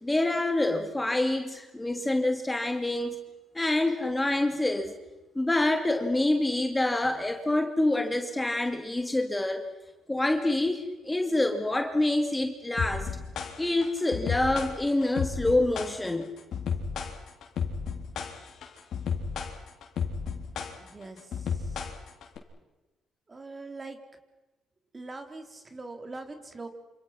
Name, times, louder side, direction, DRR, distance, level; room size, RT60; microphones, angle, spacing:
voice 1, 0.0-3.2 3.5-4.9 5.3-9.6 10.1-13.1 13.6-16.3, left 2 dB, 15° left, 2.6 m, -26 dB
sound 1, 12.8-22.4, left 6 dB, 70° left, 3.9 m, -33 dB
voice 2, 20.8-21.8 23.3-24.0 24.9-26.7, right 3 dB, 25° right, 3.8 m, -42 dB
28.0 x 27.5 x 6.0 m
cardioid pair, 90°, 0 cm